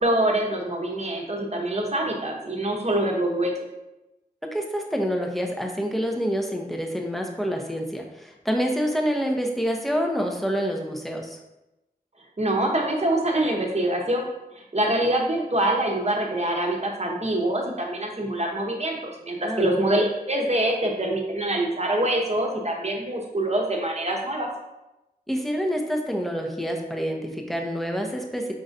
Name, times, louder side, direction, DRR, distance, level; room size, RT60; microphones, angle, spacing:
voice 1, 0.0-3.5 12.4-14.3 14.5-24.5, right 1 dB, 40° right, 0 dB, 0.9 m, -25 dB
voice 2, 4.5-11.4 19.4-19.7 25.3-28.5, equal, ahead, 1 dB, 0.7 m, -27 dB
5.4 x 3.8 x 2.6 m, 0.96 s
wide cardioid pair, 55°, 17 cm